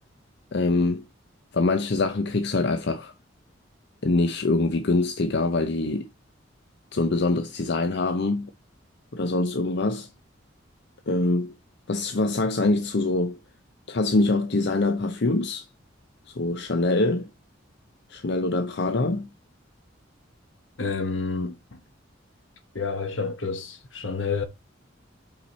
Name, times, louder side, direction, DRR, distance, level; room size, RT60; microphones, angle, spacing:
voice 1, 0.5-1.1 1.5-3.1 4.0-6.1 6.9-8.5 9.1-10.1 11.1-11.5 11.9-13.4 13.9-15.6 16.4-17.3 18.1-19.3, left 2 dB, 60° left, 0.7 m, -24 dB
voice 2, 20.8-21.8 22.7-24.4, left 4 dB, 75° left, 1.2 m, -29 dB
5.8 x 5.7 x 4.2 m
head